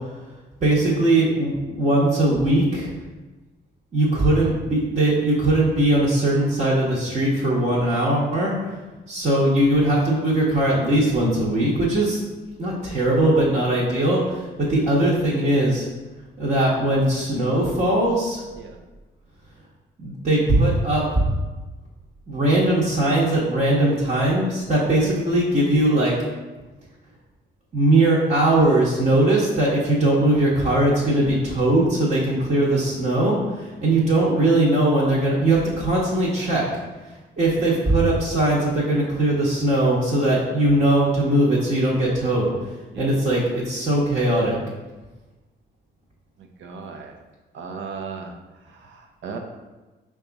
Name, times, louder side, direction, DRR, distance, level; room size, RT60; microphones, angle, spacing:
voice 1, 0.6-2.9 3.9-8.8 9.1-12.2 12.6-15.9 16.4-18.4 20.0-21.2 22.3-26.2 27.7-36.7 37.4-42.5 43.0-44.6, right 1 dB, 40° right, -7 dB, 1.1 m, -20 dB
voice 2, 46.4-47.1 47.5-49.4, right 5 dB, 70° right, 3 dB, 0.7 m, -37 dB
5.2 x 2.4 x 3.9 m, 1.2 s
cardioid pair, 90°, 20 cm